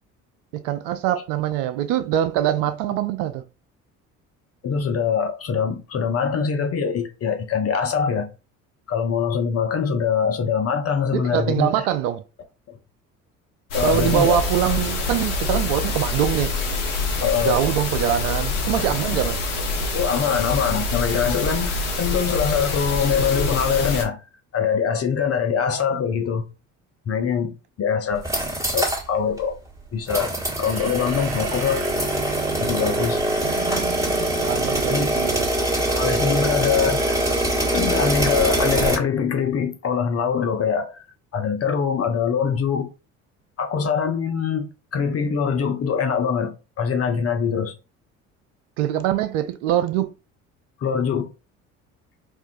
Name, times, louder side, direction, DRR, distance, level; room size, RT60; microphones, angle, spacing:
voice 1, 0.5-3.4 11.1-12.2 13.8-16.5 17.4-19.4 33.4-35.5 48.8-50.1, right 11 dB, 70° right, 0.5 m, -23 dB
voice 2, 4.6-8.3 8.9-11.7 13.7-14.4 17.2-17.6 19.9-24.2 24.5-26.4 27.1-28.3 28.7-29.6 29.9-31.8 32.6-33.2 34.9-35.2 35.8-37.2 37.7-41.0 41.3-42.9 43.6-47.7 50.8-51.3, left 6 dB, 35° left, 0.8 m, -23 dB
sound 1, 13.7-24.0, left 3 dB, 75° left, 1.1 m, -26 dB
sound 2, 28.1-29.1 29.4-29.5 30.1-39.0, right 1 dB, 10° right, 1.4 m, -23 dB
sound 3, 30.5-37.7, right 5 dB, 50° right, 1.1 m, -41 dB
4.5 x 2.4 x 2.6 m
hypercardioid pair, 55°, 41 cm